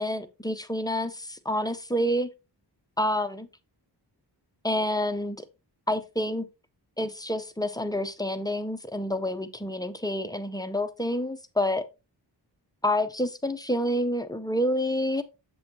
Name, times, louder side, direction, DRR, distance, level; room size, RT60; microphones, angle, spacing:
voice 1, 0.0-2.3 3.0-3.5 4.6-5.4 5.9-6.5 7.0-11.8 12.8-15.2, left 1 dB, 10° left, 0.4 m, -28 dB
7.6 x 6.2 x 2.7 m
wide cardioid pair, 165°, 43 cm